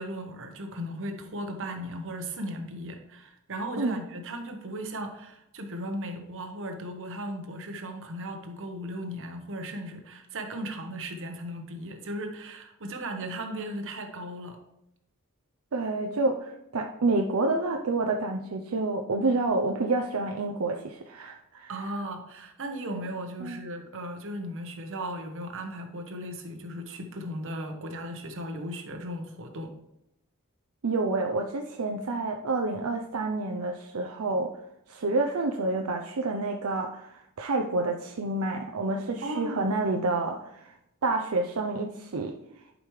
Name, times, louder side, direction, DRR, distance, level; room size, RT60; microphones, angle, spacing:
voice 1, 0.0-14.6 21.7-29.7 39.2-39.7, right 1 dB, 60° right, 5 dB, 1.2 m, -36 dB
voice 2, 15.7-21.7 23.4-23.6 30.8-34.6 34.9-40.7 41.0-42.3, right 3 dB, 80° right, 3 dB, 0.6 m, -28 dB
11.0 x 5.1 x 3.2 m, 0.83 s
head